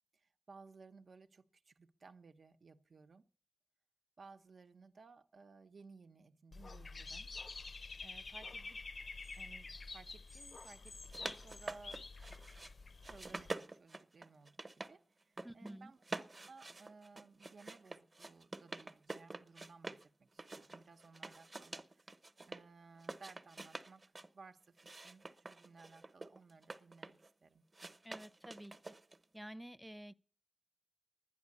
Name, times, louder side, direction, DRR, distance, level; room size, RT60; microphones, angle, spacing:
voice 1, 0.1-3.3 4.2-7.3 7.7-8.8 9.4-12.0 13.0-22.1 22.5-27.6, right 4 dB, 80° right, 0.9 m, -59 dB
Dog / Bird, 6.5-13.5, left 3 dB, 60° left, 0.6 m, -48 dB
sound 1, 10.9-12.7 13.0-14.9 15.2-15.7 16.0-20.0 20.4-22.6 23.0-24.3 24.8-27.3 27.7-29.2, right 2 dB, 40° right, 1.0 m, -47 dB
voice 2, 15.4-15.9 28.0-29.0 29.3-30.1, right 1 dB, ahead, 0.6 m, -50 dB
11.5 x 10.0 x 8.4 m
wide cardioid pair, 90°, 0 cm